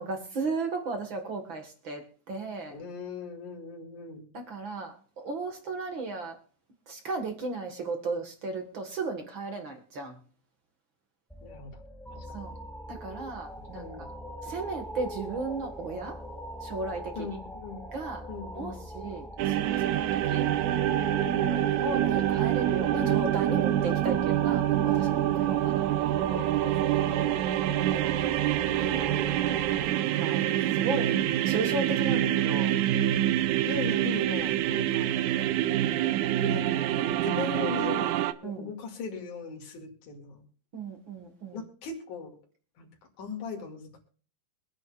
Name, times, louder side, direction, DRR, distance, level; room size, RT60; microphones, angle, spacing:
voice 1, 0.0-2.8 4.3-6.4 6.9-10.2 12.3-12.5 12.9-14.1 14.4-16.2 16.6-17.3 17.9-18.2 18.5-20.5 21.3-25.9 27.6-28.1 29.9-30.4 30.7-32.7 38.4-38.7 40.7-41.6, right 3 dB, 45° right, 5 dB, 1.8 m, -35 dB
voice 2, 2.7-4.3 11.4-11.8 12.1-12.3 13.7-14.1 17.2-17.9 18.3-18.8 21.2-21.9 26.3-27.4 27.7-28.0 28.5-29.1 30.2-31.5 32.2-32.6 33.6-35.1 36.0-36.1 36.4-38.1 38.4-40.4 41.5-42.4 42.8-42.9 43.2-44.0, left 4 dB, 65° left, 1 dB, 3.7 m, -39 dB
sound 1, 11.3-29.9, equal, ahead, 0.5 m, -41 dB
sound 2, 19.4-38.3, right 12 dB, 80° right, 1.9 m, -26 dB
24.5 x 9.1 x 2.4 m, 0.41 s
omnidirectional pair, 3.9 m